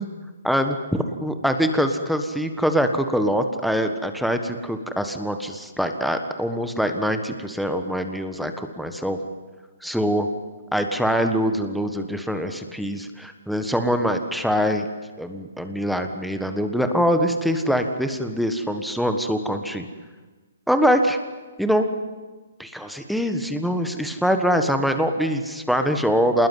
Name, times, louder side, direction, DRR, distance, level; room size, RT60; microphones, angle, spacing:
voice 1, 0.4-9.2 9.8-10.3 10.7-14.9 15.2-19.8 20.7-21.2 21.6-21.9 22.6-26.5, equal, ahead, 6 dB, 1.4 m, -23 dB
26.5 x 20.5 x 9.5 m, 1.3 s
hypercardioid pair, 155°, 0 cm